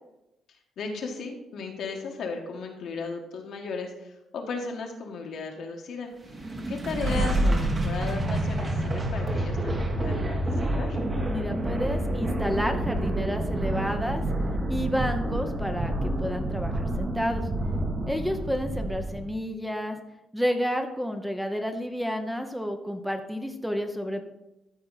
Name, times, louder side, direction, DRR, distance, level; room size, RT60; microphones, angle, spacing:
voice 1, 0.5-6.1 6.7-10.4 10.8-11.0, left 4 dB, 70° left, 2 dB, 1.5 m, -35 dB
sound 1, 6.2-19.3, right 1 dB, 35° right, 1.4 m, -28 dB
voice 2, 11.3-14.3 14.7-17.5 18.1-20.0 20.3-24.2, equal, 5° right, 6 dB, 0.8 m, -30 dB
12.5 x 4.3 x 4.1 m, 0.91 s
cardioid pair, 90°, 0 cm